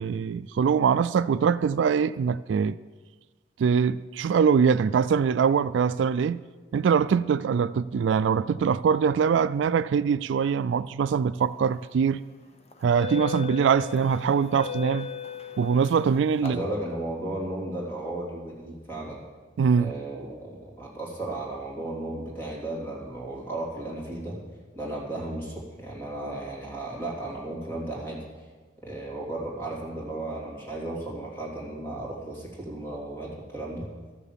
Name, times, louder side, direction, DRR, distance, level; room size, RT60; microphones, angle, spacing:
voice 1, 0.0-2.8 3.6-6.4 6.7-12.2 12.8-15.1 15.6-16.6 19.6-19.9, right 6 dB, 80° right, 0.3 m, -23 dB
sound 1, 11.7-11.9 12.7-16.5, left 8 dB, 35° left, 0.8 m, -37 dB
voice 2, 16.4-19.2 19.7-24.4 24.7-28.2 28.8-33.9, right 2 dB, 15° left, 3.2 m, -34 dB
13.0 x 6.9 x 7.4 m
head